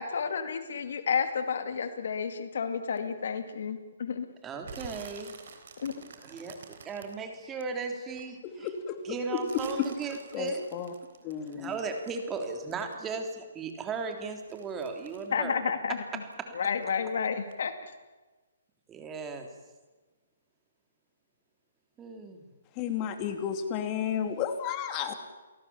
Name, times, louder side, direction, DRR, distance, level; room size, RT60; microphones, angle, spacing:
voice 1, 0.0-4.3 5.8-5.9 15.3-16.2 16.5-17.7, left 6 dB, 65° left, 9 dB, 2.4 m, -31 dB
voice 2, 4.4-5.3 6.2-8.7 9.0-10.6 11.4-15.6 16.5-16.6 18.9-19.5 22.0-22.4, right 4 dB, 15° right, 4 dB, 3.4 m, -36 dB
sound 1, 4.6-8.2 8.6-13.4 13.7-16.4 16.7-17.1 17.5-17.6, right 6 dB, 60° right, 3.8 m, -49 dB
voice 3, 8.4-9.4 9.8-9.9 10.3-10.9 11.2-11.8 22.7-25.1, left 8 dB, 30° left, 7 dB, 2.8 m, -32 dB
29.0 x 18.0 x 7.3 m, 1.2 s
hypercardioid pair, 140°, 0 cm